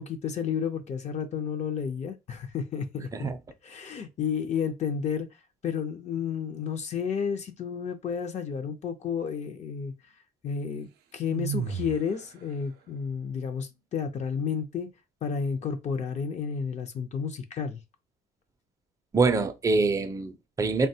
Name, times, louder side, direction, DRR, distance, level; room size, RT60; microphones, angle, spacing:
voice 1, 0.0-3.3 3.6-5.3 5.6-9.9 10.4-14.9 15.2-17.8, left 6 dB, 40° left, 0.5 m, -31 dB
sound 1, 11.3-12.2, right 8 dB, 70° right, 0.5 m, -31 dB
voice 2, 19.1-20.9, right 3 dB, 20° right, 0.4 m, -25 dB
3.3 x 2.2 x 2.7 m
cardioid pair, 110°, 17 cm